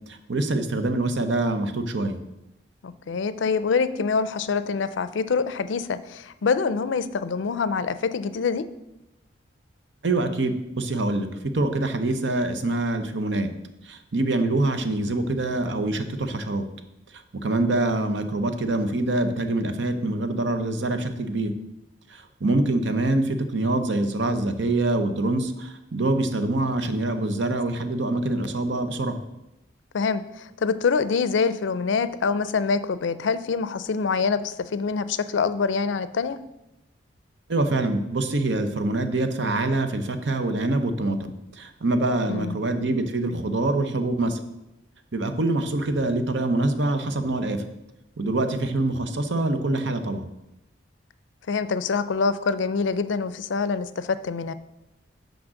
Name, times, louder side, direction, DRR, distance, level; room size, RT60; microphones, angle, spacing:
voice 1, 0.1-2.2 10.0-11.3 11.5-13.5 13.8-16.7 17.1-21.5 22.1-29.2 37.5-44.4 45.1-47.6 48.2-50.3, right 2 dB, 75° right, 8 dB, 0.8 m, -25 dB
voice 2, 2.8-8.6 29.9-36.4 42.3-42.6 51.5-54.5, left 5 dB, 80° left, 14 dB, 0.4 m, -25 dB
6.1 x 5.2 x 6.3 m, 0.91 s
head